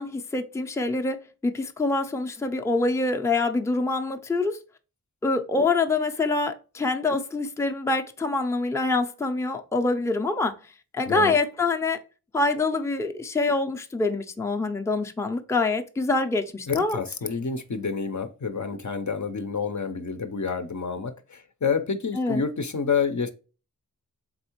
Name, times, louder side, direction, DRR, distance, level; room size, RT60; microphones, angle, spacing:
voice 1, 0.0-4.6 5.2-10.6 10.9-12.0 12.3-17.0 22.1-22.4, left 3 dB, 10° left, 0.5 m, -25 dB
voice 2, 16.7-23.3, left 5 dB, 50° left, 0.6 m, -28 dB
4.0 x 3.5 x 2.9 m
wide cardioid pair, 60°, 37 cm